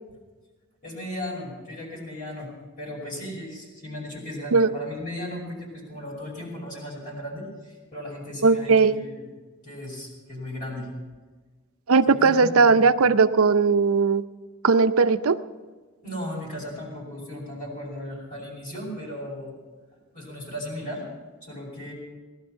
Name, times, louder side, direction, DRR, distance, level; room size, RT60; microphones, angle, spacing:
voice 1, 0.8-2.5 2.8-9.2 9.6-10.9 12.1-12.8 16.0-19.5 20.1-21.1 21.4-21.9, left 1 dB, 40° left, -4 dB, 5.5 m, -36 dB
voice 2, 8.4-9.0 11.9-14.2 14.6-15.4, right 4 dB, 85° right, 11 dB, 0.7 m, -18 dB
18.5 x 12.0 x 5.7 m, 1.4 s
head